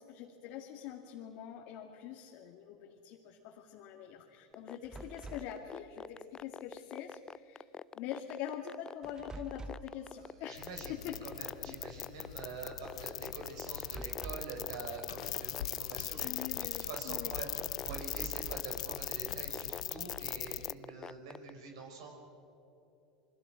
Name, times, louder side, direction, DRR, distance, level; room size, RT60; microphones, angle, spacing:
voice 1, 0.0-7.7 7.9-11.2 11.7-11.8 16.2-17.4, left 10 dB, 60° left, 1 dB, 2.1 m, -44 dB
sound 1, 4.5-21.5, left 6 dB, 20° left, 0.4 m, -45 dB
sound 2, 4.8-5.6 9.0-10.0 13.7-14.6 17.6-18.8, right 2 dB, 20° right, 0.9 m, -47 dB
voice 2, 10.0-22.1, right 3 dB, 75° right, 3 dB, 5.6 m, -46 dB
sound 3, 10.6-20.7, left 13 dB, 80° left, 0.5 m, -40 dB
28.0 x 22.0 x 6.4 m, 2.9 s
hypercardioid pair, 100°, 3 cm